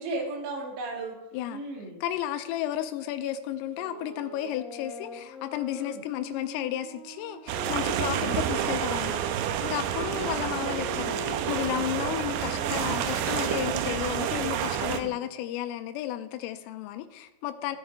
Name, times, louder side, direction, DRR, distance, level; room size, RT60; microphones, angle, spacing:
voice 1, 0.0-1.2 1.5-2.0 2.6-2.7 5.7-6.0 7.9-8.3 14.9-15.1, right 2 dB, 65° right, -1 dB, 4.3 m, -36 dB
voice 2, 2.0-17.8, left 12 dB, 90° left, 9 dB, 3.3 m, -33 dB
sound 1, 3.7-9.2 9.9-15.5, left 1 dB, 60° left, 4.8 m, -43 dB
sound 2, 7.5-15.0, right 9 dB, 85° right, 2.5 m, -29 dB
15.5 x 9.5 x 3.4 m, 0.96 s
omnidirectional pair, 5.8 m